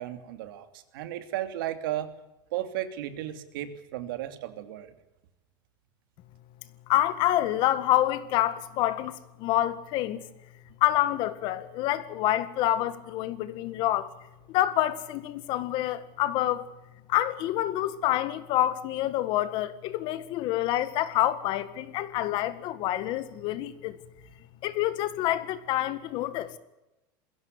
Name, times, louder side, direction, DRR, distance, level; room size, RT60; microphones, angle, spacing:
voice 1, 0.0-2.1 2.5-4.9, right 13 dB, 90° right, 3.0 m, -34 dB
voice 2, 6.9-10.2 10.8-14.1 14.5-16.7 17.1-24.0 24.6-26.5, left 14 dB, 45° left, 1.8 m, -27 dB
22.0 x 16.5 x 9.7 m
supercardioid pair, 160°, 11 cm